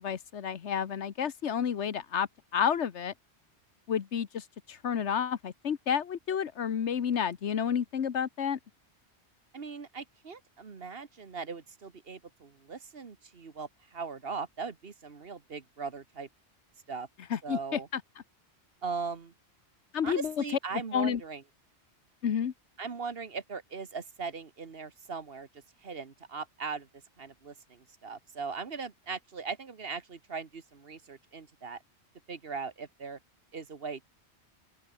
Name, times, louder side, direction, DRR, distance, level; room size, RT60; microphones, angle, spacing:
voice 1, 0.0-3.1 3.9-8.6 17.3-18.0 19.9-20.4 20.9-21.2 22.2-22.5, left 8 dB, 85° left, 1.4 m, -30 dB
voice 2, 9.5-16.3 16.9-17.1 17.4-17.9 18.8-19.3 20.0-21.4 22.8-25.5 25.8-26.9 27.2-31.8 32.3-33.2 33.5-34.1, right 5 dB, 60° right, 1.7 m, -39 dB
open air
omnidirectional pair, 1.1 m